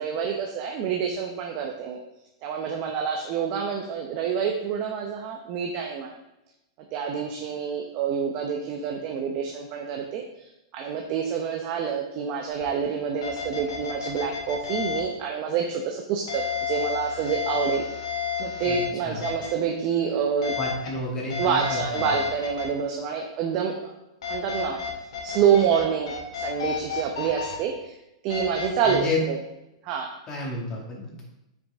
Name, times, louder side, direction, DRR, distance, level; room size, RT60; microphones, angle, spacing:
voice 1, 0.0-2.0 2.4-6.1 6.9-10.2 10.7-17.8 18.4-20.5 21.4-23.9 24.3-24.8 25.2-27.9 28.2-29.4 29.8-30.2, right 7 dB, 40° right, 2 dB, 1.0 m, -27 dB
sound 1, 12.6-12.7 13.2-15.0 16.3-18.9 19.2-19.5 20.4-20.9 21.3-22.6 24.2-25.8 26.1-27.5 28.3-29.0, left 7 dB, 85° left, 2.2 m, -31 dB
voice 2, 20.6-21.8 22.0-22.1 28.9-29.2 30.3-31.2, left 2 dB, 25° left, -2 dB, 2.4 m, -30 dB
8.6 x 6.4 x 3.7 m, 0.89 s
hypercardioid pair, 150°, 3 cm